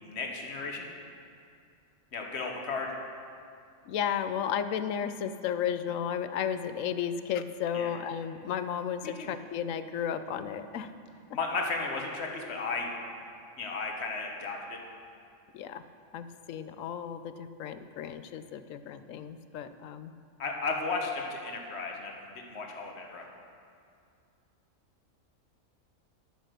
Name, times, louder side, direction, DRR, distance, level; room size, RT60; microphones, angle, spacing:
voice 1, 0.0-0.9 2.1-2.9 7.7-7.9 9.0-9.3 11.3-12.9 13.6-14.8 20.4-23.2, left 4 dB, 55° left, 1 dB, 1.5 m, -34 dB
voice 2, 3.9-10.9 15.5-15.8 16.1-20.1, left 8 dB, 80° left, 11 dB, 1.0 m, -33 dB
11.5 x 8.4 x 6.6 m, 2.4 s
omnidirectional pair, 1.4 m